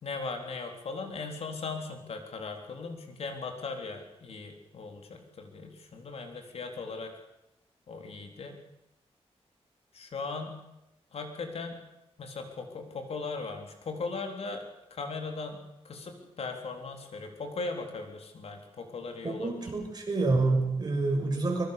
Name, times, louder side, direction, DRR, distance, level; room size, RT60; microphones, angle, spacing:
voice 1, 0.0-7.1 7.9-8.6 9.9-10.6 11.1-11.8 12.2-19.7, left 4 dB, 70° left, 4 dB, 3.7 m, -38 dB
voice 2, 19.2-21.6, right 3 dB, 40° right, 1 dB, 6.7 m, -27 dB
24.5 x 23.0 x 6.8 m, 0.91 s
wide cardioid pair, 170°, 11 cm